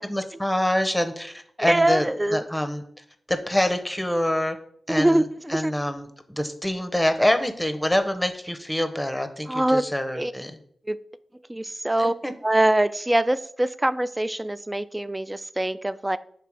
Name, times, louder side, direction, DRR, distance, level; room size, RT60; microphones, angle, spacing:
voice 1, 0.0-4.6 4.9-10.6 12.0-12.3, left 1 dB, 10° left, 8 dB, 0.8 m, -26 dB
voice 2, 1.6-2.4 4.9-5.7 9.5-9.8 10.2-10.3 10.9-11.0 11.5-12.1 12.4-16.2, right 1 dB, 20° right, 15 dB, 0.4 m, -23 dB
6.1 x 3.3 x 4.7 m, 0.65 s
cardioid pair, 40°, 0 cm